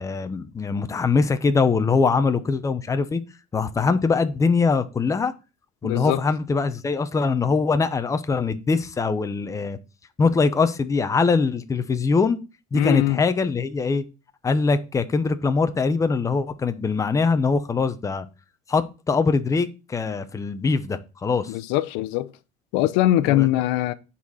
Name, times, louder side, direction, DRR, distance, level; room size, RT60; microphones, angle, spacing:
voice 1, 0.0-3.2 3.5-5.3 5.8-9.8 10.2-12.4 12.7-14.0 14.4-18.3 18.7-21.5 23.3-23.5, left 4 dB, 15° left, 0.8 m, -22 dB
voice 2, 5.8-6.2 12.7-13.2 21.5-22.3 22.7-23.9, left 14 dB, 85° left, 0.7 m, -22 dB
10.0 x 4.2 x 6.3 m
cardioid pair, 135°, 18 cm